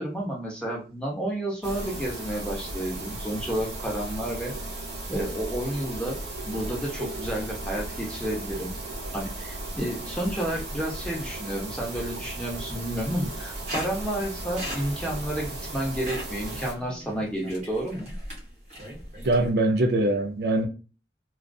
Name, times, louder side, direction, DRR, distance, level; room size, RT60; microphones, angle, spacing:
voice 1, 0.0-4.5 5.1-6.2 6.4-8.8 9.1-18.1, right 1 dB, 5° left, 0.6 m, -31 dB
sound 1, 1.6-16.7, right 2 dB, 85° right, 1.0 m, -36 dB
sound 2, 13.7-19.5, equal, 40° right, 0.9 m, -39 dB
voice 2, 19.2-20.7, right 2 dB, 60° right, 0.4 m, -22 dB
2.4 x 2.3 x 2.3 m
head